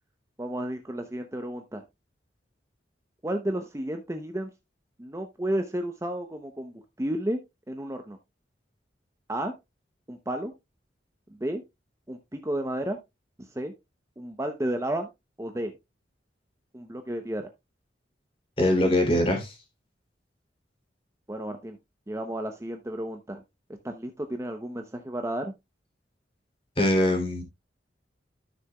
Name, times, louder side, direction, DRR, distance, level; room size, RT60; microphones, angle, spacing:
voice 1, 0.4-1.8 3.2-4.5 5.0-7.4 7.7-8.2 9.3-9.5 10.1-10.5 11.4-11.6 12.1-13.0 13.4-13.7 14.2-15.1 15.4-15.7 16.7-17.5 21.3-21.8 22.1-23.4 23.8-25.5, right 1 dB, 15° right, 0.7 m, -32 dB
voice 2, 18.6-19.5 26.8-27.4, left 1 dB, 30° left, 2.9 m, -22 dB
12.5 x 6.5 x 2.3 m
head